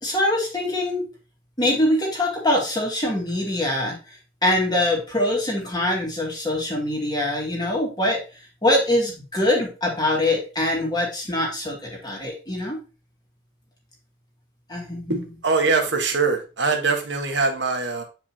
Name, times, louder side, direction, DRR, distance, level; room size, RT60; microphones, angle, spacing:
voice 1, 0.0-1.1 1.6-8.2 8.6-12.8 14.7-15.2, left 1 dB, 20° left, -1 dB, 2.2 m, -23 dB
voice 2, 15.1-18.0, right 4 dB, 65° right, 3 dB, 1.5 m, -23 dB
8.1 x 5.0 x 2.9 m, 0.32 s
head